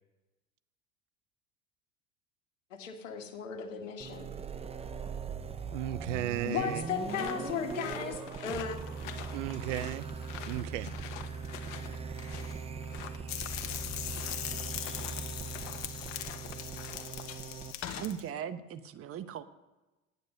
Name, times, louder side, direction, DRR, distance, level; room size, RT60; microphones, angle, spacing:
voice 1, 2.7-4.3 6.4-8.8, left 7 dB, 90° left, 5 dB, 1.7 m, -36 dB
sound 1, 4.0-17.7, right 5 dB, 15° right, 0.7 m, -40 dB
voice 2, 5.7-6.9 9.3-10.1 10.5-10.9, right 14 dB, 80° right, 18 dB, 0.7 m, -35 dB
sound 2, 7.1-17.4, left 11 dB, 70° left, 1.3 m, -47 dB
sound 3, 13.3-18.2, left 11 dB, 50° left, 1.4 m, -40 dB
voice 3, 17.9-19.4, right 9 dB, 40° right, 13 dB, 0.9 m, -39 dB
9.7 x 9.4 x 6.5 m, 1.1 s
hypercardioid pair, 90°, 37 cm